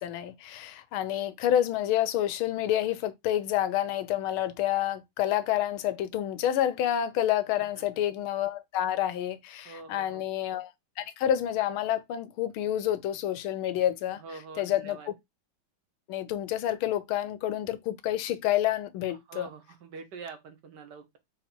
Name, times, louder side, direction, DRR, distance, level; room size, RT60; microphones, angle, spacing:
voice 1, 0.0-10.7 11.0-15.1 16.1-19.5, left 11 dB, 85° left, 1.5 m, -29 dB
voice 2, 9.6-10.2 14.2-15.1 19.3-21.2, right 5 dB, 65° right, 1.3 m, -45 dB
4.2 x 3.0 x 4.3 m
omnidirectional pair, 2.2 m